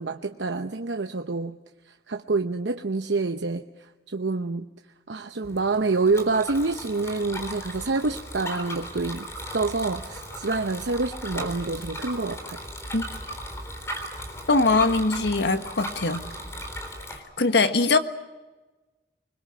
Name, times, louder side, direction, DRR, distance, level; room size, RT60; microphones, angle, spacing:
voice 1, 0.0-1.6 1.9-4.7 5.1-9.3 9.5-12.6, right 3 dB, 80° right, 7 dB, 0.8 m, -27 dB
Bicycle, 5.4-17.2, equal, 15° left, 3.7 m, -37 dB
voice 2, 14.5-16.2 17.1-18.0, left 3 dB, 70° left, 9 dB, 1.4 m, -22 dB
26.0 x 21.0 x 7.8 m, 1.2 s
head